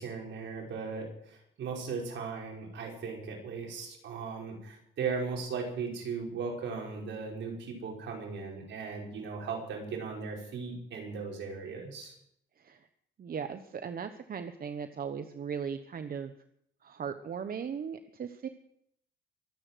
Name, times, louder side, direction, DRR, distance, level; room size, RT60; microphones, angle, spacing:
voice 1, 0.0-12.1, right 5 dB, 70° right, 0 dB, 5.5 m, -37 dB
voice 2, 12.6-12.9 13.2-16.3 16.8-18.5, right 7 dB, 50° right, 9 dB, 1.1 m, -38 dB
23.5 x 8.8 x 6.4 m, 0.71 s
cardioid pair, 90°, 20 cm